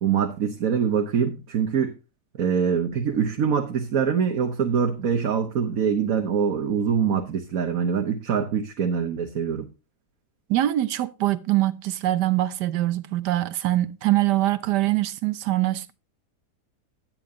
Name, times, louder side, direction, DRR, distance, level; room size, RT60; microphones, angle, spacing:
voice 1, 0.0-2.0 2.4-9.7, right 7 dB, 60° right, 1.6 m, -24 dB
voice 2, 10.5-15.9, right 15 dB, 85° right, 1.4 m, -23 dB
11.0 x 9.1 x 3.8 m
omnidirectional pair, 1.7 m